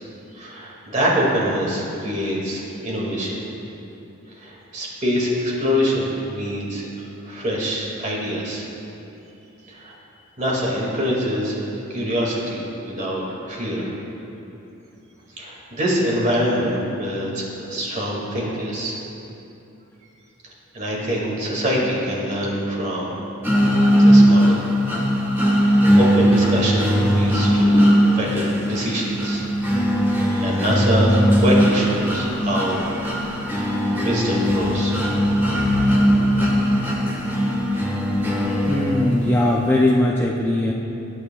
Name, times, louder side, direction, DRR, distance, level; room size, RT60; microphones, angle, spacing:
voice 1, 0.4-3.4 4.4-8.7 9.7-9.9 10.4-13.9 15.4-19.0 20.7-23.2 24.0-24.6 26.0-29.4 29.9-31.1 31.4-32.9 34.0-35.0, equal, 35° right, -4 dB, 2.1 m, -24 dB
sound 1, 23.4-39.4, equal, 10° right, 1.3 m, -19 dB
voice 2, 38.7-40.7, left 1 dB, 10° left, -2 dB, 0.4 m, -19 dB
20.0 x 8.5 x 2.3 m, 2.9 s
head